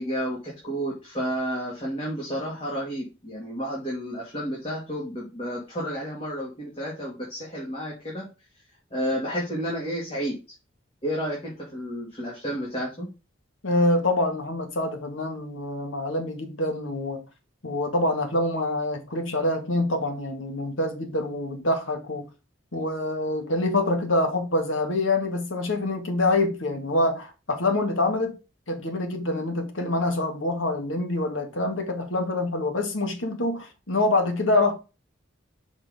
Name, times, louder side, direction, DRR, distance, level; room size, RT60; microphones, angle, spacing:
voice 1, 0.0-8.3 8.9-10.3 11.0-13.1, equal, 30° left, 2.2 m, -31 dB
voice 2, 13.6-17.2 17.6-22.3 22.7-28.3 28.7-34.7, left 2 dB, 85° left, 1.7 m, -26 dB
6.2 x 4.1 x 5.2 m
head